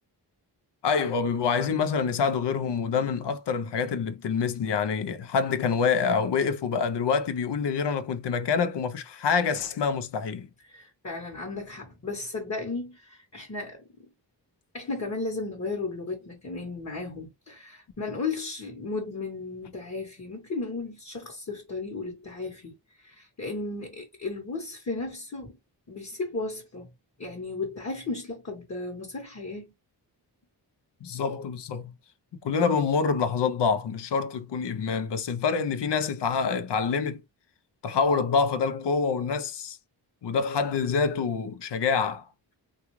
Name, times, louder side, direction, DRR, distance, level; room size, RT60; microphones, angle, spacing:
voice 1, 0.8-10.5 31.0-31.9 32.4-37.2 37.8-39.8 40.2-42.3, left 5 dB, 75° left, 0.6 m, -26 dB
voice 2, 10.7-13.8 14.7-25.6 25.9-26.9 27.2-29.7, left 3 dB, 40° left, 1.0 m, -35 dB
3.6 x 2.4 x 3.0 m
wide cardioid pair, 100°, 42 cm